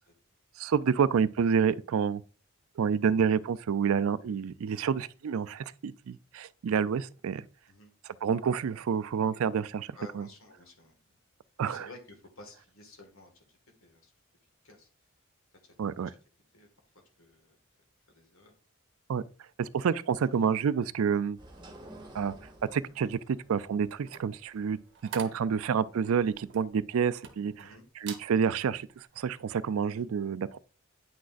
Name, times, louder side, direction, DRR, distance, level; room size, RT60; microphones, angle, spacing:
voice 1, 0.6-2.2 2.8-7.4 8.2-10.3 11.6-11.9 15.8-16.1 19.1-19.2 19.6-21.4 22.1-22.3 22.7-24.8 25.1-27.6 28.0-30.6, right 6 dB, 75° right, 0.4 m, -28 dB
voice 2, 10.0-11.0 11.6-14.1 14.6-14.9 15.6-15.8 16.5-16.7 17.2-17.6 18.1-18.5 21.8-22.1 27.6-27.9, left 2 dB, 70° left, 1.9 m, -53 dB
sound 1, 21.4-26.6, right 1 dB, 20° right, 1.3 m, -52 dB
sound 2, 23.8-27.7 28.0-28.3 28.8-29.0, right 7 dB, 55° right, 0.9 m, -45 dB
9.3 x 6.2 x 2.5 m
head